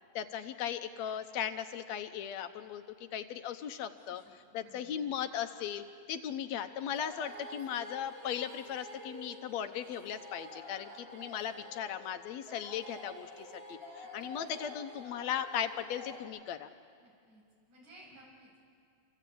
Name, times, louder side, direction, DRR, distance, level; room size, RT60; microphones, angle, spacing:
voice 1, 0.2-2.8 3.1-4.2 4.5-16.7, left 9 dB, 75° left, 9 dB, 2.0 m, -37 dB
voice 2, 3.9-4.9 14.0-14.3 17.0-18.6, right 1 dB, 75° right, -2 dB, 9.2 m, -59 dB
sound 1, 6.6-16.2, left 1 dB, 40° right, 6.6 m, -49 dB
28.0 x 24.5 x 8.6 m, 2.2 s
omnidirectional pair, 3.3 m